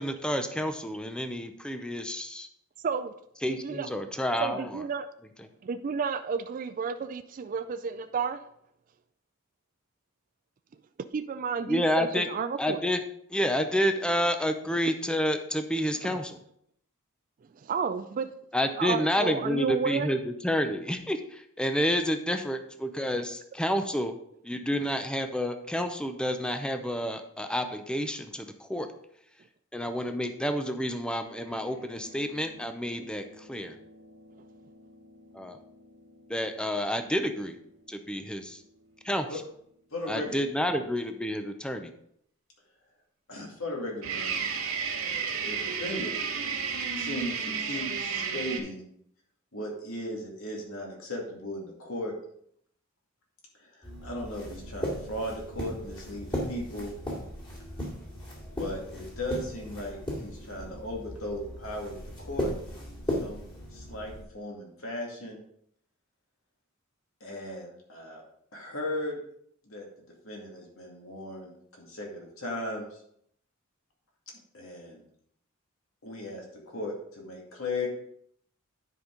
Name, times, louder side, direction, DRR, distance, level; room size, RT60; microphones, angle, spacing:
voice 1, 0.0-2.5 3.4-4.8 11.7-12.3 12.6-13.0 13.3-16.4 18.5-24.1 24.4-28.9 29.7-33.7 35.3-35.6 36.3-37.6 37.9-38.6 39.0-39.3 40.1-41.9, equal, 5° left, 7 dB, 0.6 m, -29 dB
voice 2, 2.8-3.1 3.6-3.9 4.4-5.1 5.6-8.4 11.1-12.9 17.6-18.3 18.8-20.1, right 5 dB, 40° right, 10 dB, 0.3 m, -31 dB
sound 1, 31.4-37.0 44.0-48.6, right 6 dB, 90° right, 2.2 m, -35 dB
voice 3, 39.9-40.4 40.7-40.8 43.3-44.4 45.4-46.1 46.7-48.8 49.5-52.1 53.6-56.9 58.6-62.5 63.1-65.4 67.2-68.2 68.5-69.2 69.6-69.9 70.2-73.0 74.5-75.0 76.0-77.9, left 1 dB, 75° left, -1 dB, 2.3 m, -37 dB
sound 2, 53.8-64.2, equal, 25° left, 2.3 m, -37 dB
9.7 x 5.2 x 3.8 m, 0.69 s
head